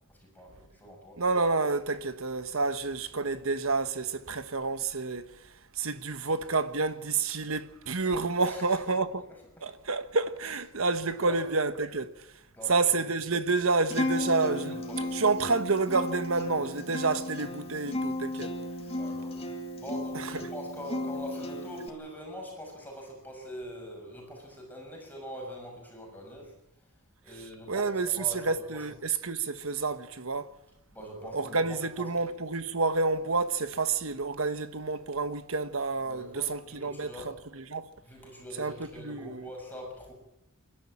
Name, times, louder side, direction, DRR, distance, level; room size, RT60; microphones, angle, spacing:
voice 1, 0.1-1.2 8.4-8.8 9.6-9.7 11.2-11.4 12.5-13.1 14.1-15.5 18.9-26.5 26.8-26.9 27.2-28.8 30.9-32.1 36.0-37.3 38.0-40.1, equal, 10° left, 6.6 m, -43 dB
voice 2, 1.2-5.3 5.7-9.3 9.6-12.1 12.7-14.8 15.1-18.5 20.1-20.3 27.7-30.5 31.3-37.1 37.6-37.9 38.6-39.5, right 3 dB, 70° right, 1.3 m, -29 dB
Acoustic guitar, 13.9-21.9, left 1 dB, 30° left, 2.4 m, -35 dB
28.0 x 12.5 x 8.8 m
head